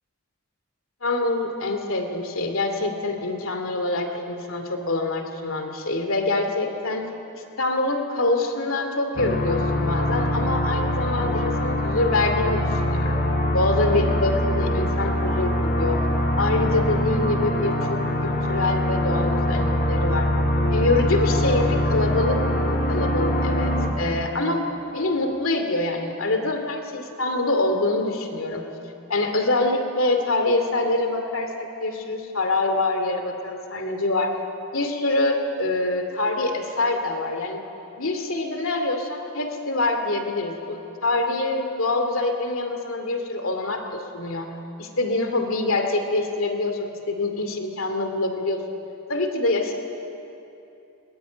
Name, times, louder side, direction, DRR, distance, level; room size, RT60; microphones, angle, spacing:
voice 1, 1.0-7.1 7.3-16.0 16.4-20.3 20.7-28.7 29.1-34.3 34.7-37.6 38.0-44.5 44.8-48.6 49.1-49.7, left 2 dB, 75° left, 5 dB, 2.5 m, -25 dB
sound 1, 9.2-23.9, left 1 dB, 50° left, 3.1 m, -23 dB
21.0 x 20.5 x 9.0 m, 2.9 s
head